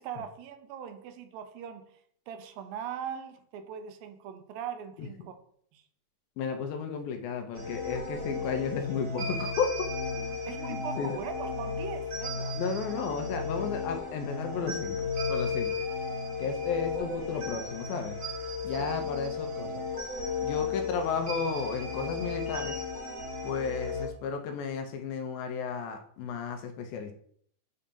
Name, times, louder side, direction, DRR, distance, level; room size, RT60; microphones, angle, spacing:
voice 1, 0.0-2.0 2.3-5.3 5.7-5.8 10.4-12.6 16.4-16.6 18.8-18.9, right 8 dB, 75° right, 7 dB, 2.3 m, -40 dB
voice 2, 6.4-9.9 10.5-11.2 12.5-15.9 16.4-18.2 18.6-19.8 20.4-22.8 23.4-27.1, left 5 dB, 80° left, 5 dB, 2.4 m, -33 dB
sound 1, 7.5-24.1, left 4 dB, 40° right, 1.1 m, -34 dB
8.4 x 2.8 x 5.2 m, 0.62 s
omnidirectional pair, 4.4 m